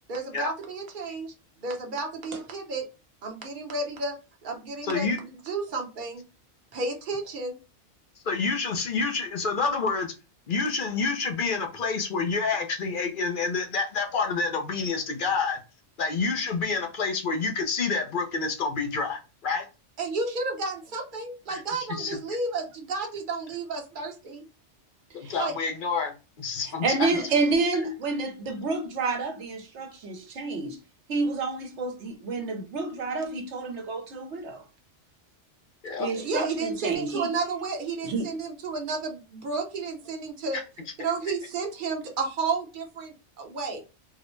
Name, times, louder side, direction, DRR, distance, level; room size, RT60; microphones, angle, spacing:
voice 1, 0.1-1.3 1.6-2.8 3.2-4.2 4.4-6.2 6.7-7.6 20.0-24.4 25.4-25.5 36.2-40.6 41.0-43.8, right 3 dB, 50° right, 0.9 m, -32 dB
voice 2, 4.8-5.2 8.2-10.1 10.5-15.6 16.0-19.7 21.5-21.6 21.9-22.2 25.1-27.1 35.8-36.1, left 4 dB, 55° left, 0.7 m, -28 dB
voice 3, 26.8-30.8 31.1-34.6 36.0-37.3 38.0-38.3, right 3 dB, 75° right, 1.1 m, -29 dB
3.9 x 2.1 x 3.1 m
omnidirectional pair, 1.2 m